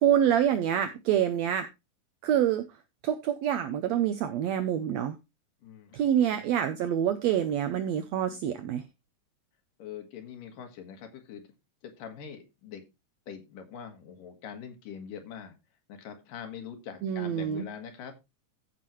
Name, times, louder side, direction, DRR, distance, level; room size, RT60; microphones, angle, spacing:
voice 1, 0.0-1.7 2.2-2.7 3.0-5.2 5.9-8.8 17.0-17.7, right 10 dB, 80° right, 9 dB, 1.6 m, -26 dB
voice 2, 5.6-6.4 9.8-11.4 11.8-12.8 13.3-15.5 15.9-18.1, left 7 dB, 85° left, 5 dB, 3.2 m, -43 dB
14.5 x 5.9 x 3.1 m, 0.25 s
omnidirectional pair, 3.8 m